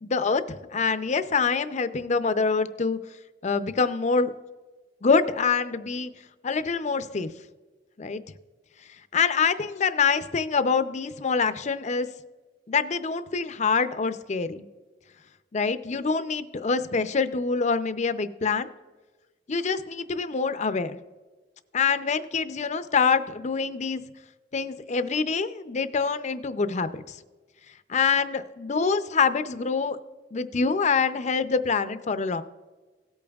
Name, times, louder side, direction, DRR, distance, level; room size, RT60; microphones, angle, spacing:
voice 1, 0.0-3.0 3.4-4.3 5.0-6.1 6.4-7.3 8.0-8.2 9.1-12.1 12.7-14.6 15.5-18.7 19.5-21.0 21.7-24.0 24.5-27.2 27.9-30.0 30.3-32.4, left 5 dB, 40° left, 12 dB, 0.5 m, -25 dB
17.5 x 8.5 x 2.4 m, 1.3 s
head